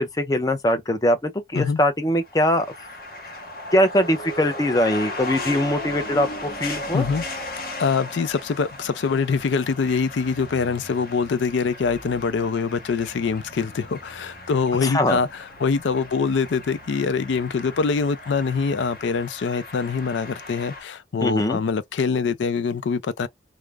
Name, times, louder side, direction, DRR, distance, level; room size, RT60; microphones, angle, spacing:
voice 1, 0.0-2.7 3.7-7.0 14.8-15.2 21.2-21.6, left 1 dB, 20° left, 0.5 m, -22 dB
sound 1, 2.2-20.8, left 1 dB, 55° left, 0.8 m, -37 dB
voice 2, 6.9-7.2 7.8-23.3, left 5 dB, 85° left, 0.4 m, -24 dB
2.3 x 2.0 x 3.2 m
head